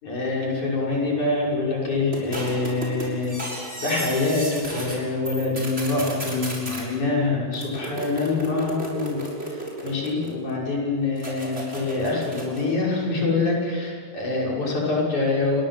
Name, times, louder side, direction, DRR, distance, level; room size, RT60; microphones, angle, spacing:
voice 1, 0.0-15.6, left 3 dB, 75° left, -4 dB, 7.7 m, -25 dB
sound 1, 2.1-5.0 5.3-6.8 7.5-10.5 11.2-12.7, right 1 dB, 20° right, 6.6 m, -34 dB
29.5 x 22.5 x 7.7 m, 2.1 s
omnidirectional pair, 3.4 m